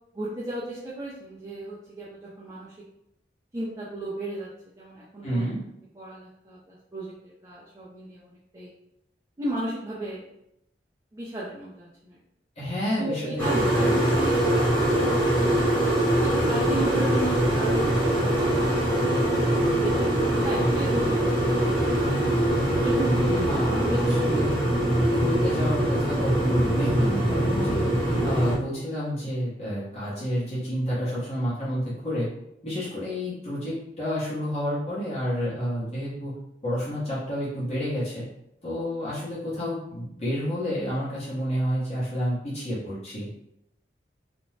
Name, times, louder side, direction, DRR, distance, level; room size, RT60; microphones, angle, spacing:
voice 1, 0.1-2.8 3.5-4.5 4.8-5.4 6.0-8.7 9.4-10.2 11.1-12.2 13.0-13.9 14.1-14.6 16.2-19.1 19.6-22.5 22.8-23.3 23.6-24.0, right 1 dB, 20° right, -8 dB, 0.5 m, -35 dB
voice 2, 5.2-5.6 12.6-14.1 23.2-24.5 25.1-27.8 28.2-32.3 32.6-36.3 36.6-38.3 38.6-43.3, equal, 35° left, -9 dB, 0.9 m, -29 dB
sound 1, 13.4-28.6, right 1 dB, 10° left, 1.1 m, -23 dB
2.5 x 2.2 x 3.1 m, 0.79 s
head